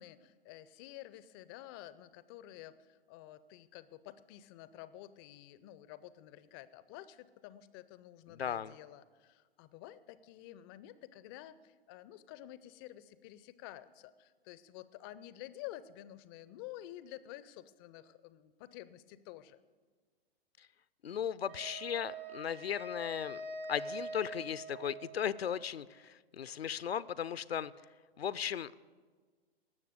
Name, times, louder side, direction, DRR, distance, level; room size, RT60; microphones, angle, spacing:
voice 1, 0.0-19.6, left 14 dB, 25° left, 16 dB, 0.4 m, -50 dB
voice 2, 8.3-8.7 21.0-23.4 23.7-27.7 28.2-28.7, left 8 dB, 80° left, 17 dB, 0.5 m, -36 dB
Wind instrument woodwind instrument, 21.5-25.6, right 1 dB, 70° right, 2.7 m, -44 dB
18.5 x 7.1 x 8.0 m, 1.5 s
figure-of-eight pair, 110°, 30 cm